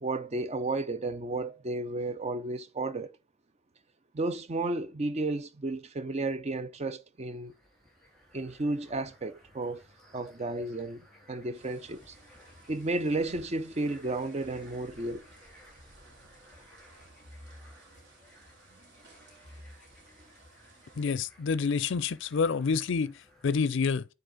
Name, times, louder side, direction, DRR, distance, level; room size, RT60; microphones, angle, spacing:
voice 1, 0.0-3.1 4.1-7.5 8.3-9.8 10.1-12.1 12.7-15.2, right 2 dB, 30° right, 0.5 m, -33 dB
sound 1, 7.2-23.5, equal, ahead, 3.5 m, -59 dB
sound 2, 11.5-21.1, right 1 dB, 55° right, 3.1 m, -55 dB
voice 2, 20.9-24.1, left 5 dB, 60° left, 0.4 m, -28 dB
9.3 x 4.0 x 3.8 m
head